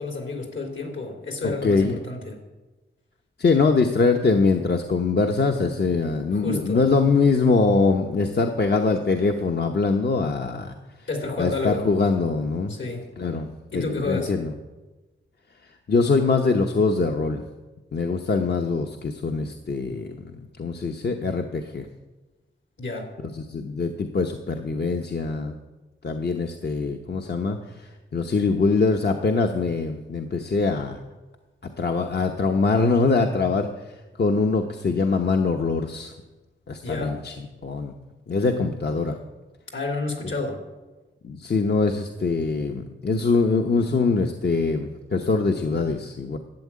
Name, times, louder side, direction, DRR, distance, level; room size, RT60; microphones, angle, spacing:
voice 1, 0.0-2.4 6.3-6.8 11.1-11.9 12.7-13.1 13.7-14.3 22.8-23.1 36.8-37.2 39.7-40.6, left 3 dB, 70° left, 2 dB, 3.1 m, -30 dB
voice 2, 1.4-2.0 3.4-10.7 11.4-12.7 13.2-14.5 15.9-17.4 17.9-21.9 23.2-25.5 26.0-31.0 31.6-36.1 36.7-37.9 38.3-39.2 41.2-46.4, left 4 dB, 55° left, 4 dB, 1.0 m, -23 dB
12.0 x 8.4 x 8.7 m, 1.2 s
wide cardioid pair, 95°, 20 cm